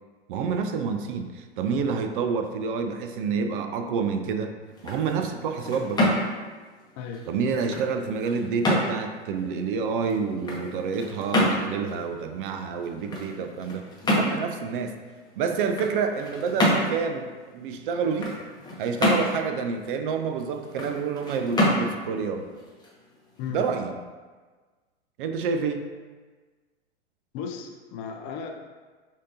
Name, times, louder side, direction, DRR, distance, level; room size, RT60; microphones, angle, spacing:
voice 1, 0.3-6.1 7.3-13.8 14.1-15.0 15.4-18.4 18.8-22.6 23.5-24.0 25.2-25.9, right 5 dB, 50° right, 7 dB, 0.5 m, -28 dB
sound 1, 4.6-23.5, left 1 dB, 10° left, 0.9 m, -29 dB
voice 2, 7.0-7.3 23.4-23.6 27.3-28.5, left 7 dB, 35° left, 2 dB, 0.5 m, -35 dB
6.2 x 2.8 x 2.7 m, 1.4 s
hypercardioid pair, 105°, 34 cm